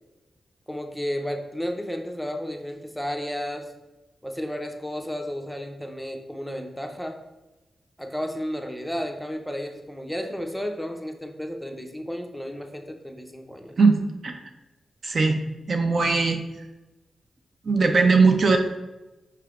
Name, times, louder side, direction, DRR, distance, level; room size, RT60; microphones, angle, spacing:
voice 1, 0.7-3.7 4.2-7.2 8.0-13.8, equal, 5° left, 4 dB, 0.5 m, -32 dB
voice 2, 13.8-14.4 15.0-15.4 15.7-16.4 17.6-18.6, right 4 dB, 55° right, 4 dB, 0.5 m, -19 dB
5.7 x 3.3 x 2.4 m, 1.0 s
cardioid pair, 65°, 0 cm